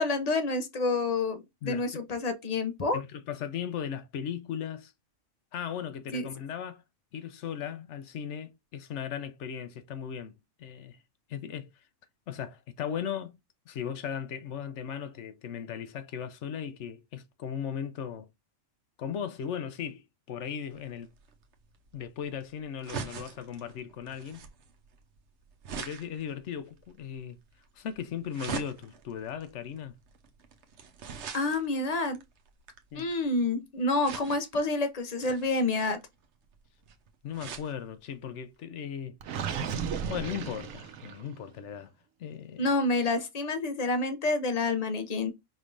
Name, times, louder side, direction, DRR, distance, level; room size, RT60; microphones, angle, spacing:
voice 1, 0.0-3.0 6.1-6.3 31.3-32.2 32.9-36.0 42.6-45.3, left 3 dB, 40° left, 0.6 m, -28 dB
voice 2, 2.9-4.9 5.5-6.8 7.1-10.3 10.6-11.0 11.3-11.7 12.3-13.3 13.7-18.3 19.0-20.0 20.3-21.1 21.9-24.4 25.8-27.4 27.8-29.9 32.9-33.1 37.2-39.2 40.1-41.9 42.2-42.7, left 8 dB, 65° left, 0.9 m, -37 dB
sound 1, 20.7-33.3 34.0-34.7 35.2-37.7 38.2-38.3 38.5-38.6, right 6 dB, 65° right, 1.0 m, -43 dB
Gurgling, 39.2-41.4, right 7 dB, 85° right, 1.1 m, -34 dB
5.1 x 3.3 x 2.5 m
omnidirectional pair, 1.4 m